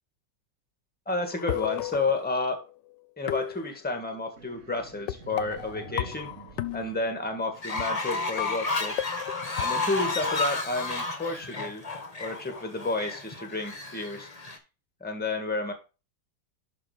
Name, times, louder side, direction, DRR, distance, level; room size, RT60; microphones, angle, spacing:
voice 1, 1.0-2.6 3.2-6.3 6.7-8.9 9.6-11.8 12.2-14.3 15.0-15.7, left 3 dB, 5° left, 6 dB, 1.5 m, -31 dB
sound 1, 1.3-2.7 3.3-4.2 5.1-7.2 7.8-7.9 8.1-10.4, left 13 dB, 80° left, 1.3 m, -35 dB
sound 2, 4.4-7.8, right 2 dB, 45° right, 1.8 m, -47 dB
Fowl, 7.6-14.6, left 3 dB, 25° left, 1.2 m, -32 dB
11.0 x 3.8 x 4.9 m, 0.31 s
omnidirectional pair, 1.9 m